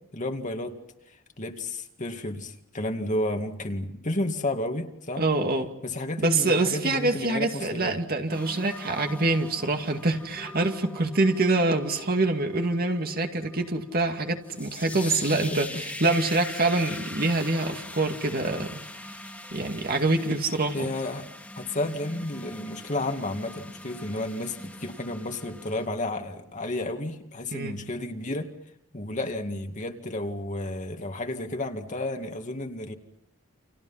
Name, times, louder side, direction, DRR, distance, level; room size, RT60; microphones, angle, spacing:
voice 1, 0.1-0.8 1.4-5.2 5.8-8.0 14.9-15.8 16.8-17.0 20.7-21.2 21.6-28.5 28.9-32.9, left 1 dB, 35° left, 5 dB, 2.1 m, -32 dB
voice 2, 5.2-5.7 6.2-19.1 19.5-20.9 27.5-27.8, right 2 dB, 45° right, 5 dB, 2.3 m, -25 dB
sound 1, 8.3-25.9, left 1 dB, 5° left, 2.3 m, -42 dB
30.0 x 27.5 x 5.8 m, 0.75 s
head